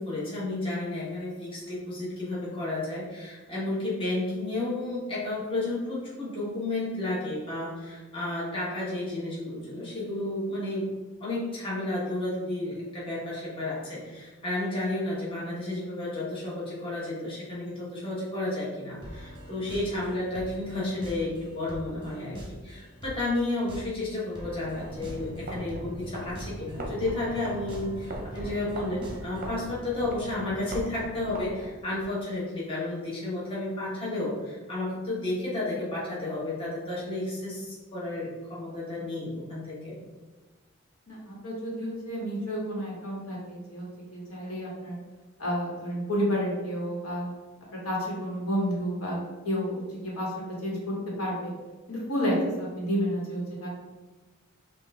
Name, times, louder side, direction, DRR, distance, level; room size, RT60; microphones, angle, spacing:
voice 1, 0.0-10.9 11.2-40.0, left 2 dB, 25° left, -8 dB, 1.1 m, -32 dB
sound 1, 19.0-29.7, equal, 20° right, 1.0 m, -44 dB
sound 2, 24.7-32.1, right 1 dB, 40° right, 0.6 m, -40 dB
voice 2, 41.1-43.8 44.1-45.0 45.4-47.3 47.8-49.2 49.4-50.3 50.6-51.5 51.9-53.7, equal, 80° left, -4 dB, 1.4 m, -30 dB
5.6 x 2.5 x 3.4 m, 1.3 s
head